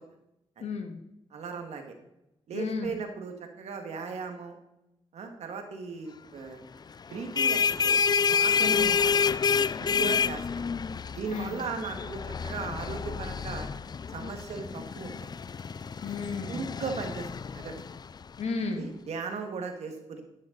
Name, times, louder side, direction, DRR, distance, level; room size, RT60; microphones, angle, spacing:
voice 1, 0.6-1.0 2.5-2.9 8.6-8.9 9.9-10.1 11.3-11.5 16.0-16.7 18.4-18.9, left 4 dB, 80° left, 6 dB, 1.6 m, -33 dB
voice 2, 1.3-1.9 2.5-4.6 5.1-6.6 7.1-8.0 8.3-9.4 9.8-10.6 11.1-13.7 14.1-15.3 16.5-17.8 18.7-20.2, right 5 dB, 90° right, 5 dB, 1.8 m, -37 dB
sound 1, 7.1-18.4, left 6 dB, 40° left, 0.4 m, -29 dB
12.0 x 9.6 x 3.9 m, 0.89 s
cardioid pair, 75°, 11 cm